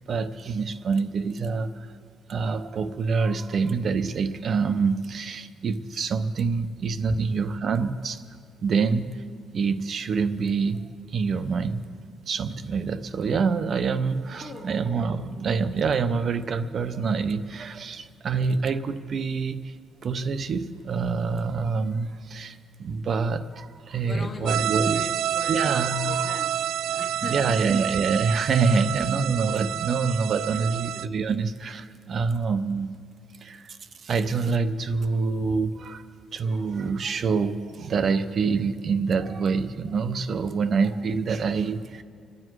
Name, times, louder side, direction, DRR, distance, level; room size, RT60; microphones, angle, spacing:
voice 1, 0.1-1.9 2.3-8.2 8.6-9.2 9.5-11.8 12.3-19.7 20.0-25.1 25.5-26.4 27.2-32.9 33.4-33.8 34.0-36.0 36.3-42.0, right 5 dB, 40° right, 11 dB, 0.8 m, -26 dB
voice 2, 14.4-14.7 24.0-27.9 28.3-29.1 29.4-29.7 30.5-31.0, left 3 dB, 25° left, 4 dB, 1.6 m, -40 dB
sound 1, 24.4-31.1, right 11 dB, 70° right, 0.3 m, -28 dB
27.5 x 9.9 x 4.7 m, 2.2 s
cardioid pair, 145°, 0 cm